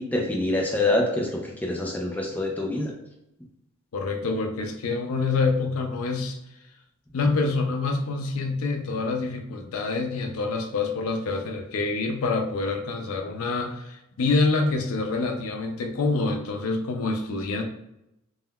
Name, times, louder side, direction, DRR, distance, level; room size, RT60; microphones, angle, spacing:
voice 1, 0.0-2.9, left 2 dB, 10° left, 0 dB, 0.3 m, -26 dB
voice 2, 3.9-6.4 7.1-17.6, left 3 dB, 85° left, 4 dB, 0.4 m, -26 dB
3.5 x 2.2 x 2.2 m, 0.85 s
head